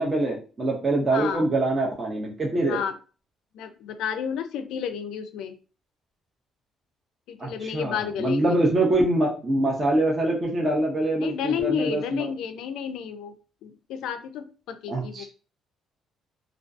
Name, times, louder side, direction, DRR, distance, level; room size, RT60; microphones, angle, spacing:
voice 1, 0.0-2.8 7.4-12.3 14.9-15.2, right 2 dB, 25° right, -1 dB, 0.4 m, -24 dB
voice 2, 1.1-1.4 2.7-2.9 3.5-5.5 7.3-8.6 11.2-13.4 13.6-15.2, left 8 dB, 85° left, 9 dB, 0.3 m, -31 dB
2.4 x 2.2 x 2.4 m, 0.36 s
cardioid pair, 175°, 0 cm